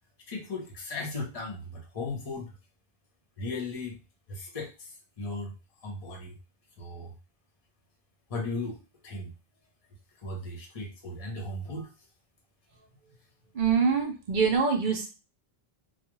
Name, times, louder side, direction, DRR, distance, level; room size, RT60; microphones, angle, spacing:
voice 1, 0.3-2.6 3.4-4.0 4.3-6.4 6.8-7.1 8.3-9.3 10.2-11.9, left 2 dB, 40° left, 0 dB, 0.7 m, -37 dB
voice 2, 13.5-15.1, right 5 dB, 55° right, 3 dB, 0.8 m, -24 dB
2.4 x 2.2 x 3.0 m, 0.31 s
omnidirectional pair, 1.0 m